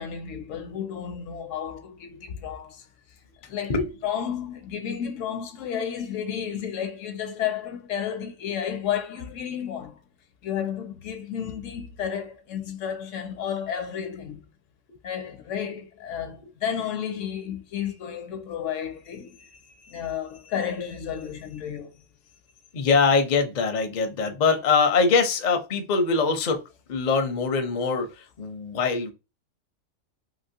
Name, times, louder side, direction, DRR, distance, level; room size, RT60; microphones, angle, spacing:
voice 1, 0.0-2.9 3.5-3.8 4.0-10.0 10.4-14.5 15.0-21.9, left 8 dB, 75° left, 0.9 m, -32 dB
voice 2, 22.7-26.6 26.9-29.1, left 4 dB, 50° left, 0.6 m, -23 dB
3.0 x 2.8 x 2.7 m
omnidirectional pair, 1.4 m